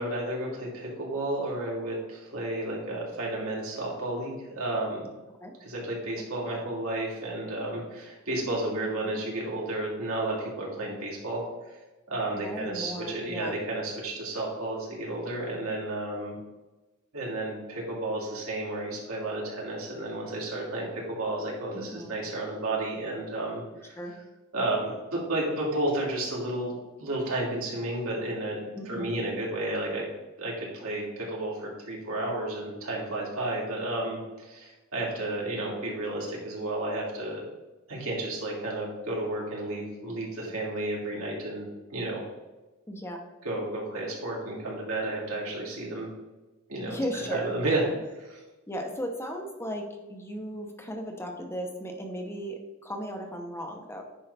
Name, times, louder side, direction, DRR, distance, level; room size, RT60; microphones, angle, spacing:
voice 1, 0.0-5.0 5.6-11.8 12.1-16.3 17.1-23.9 24.5-26.7 27.0-30.0 30.4-37.4 37.9-42.2 43.4-46.1 46.7-47.8 48.2-48.4, right 2 dB, 75° right, -3 dB, 2.8 m, -32 dB
voice 2, 12.3-13.6 21.7-22.1 24.0-24.1 28.7-29.2 42.9-43.2 46.9-47.5 47.8-48.0 48.7-54.0, equal, 10° left, 2 dB, 0.9 m, -36 dB
9.8 x 5.4 x 3.4 m, 1.1 s
head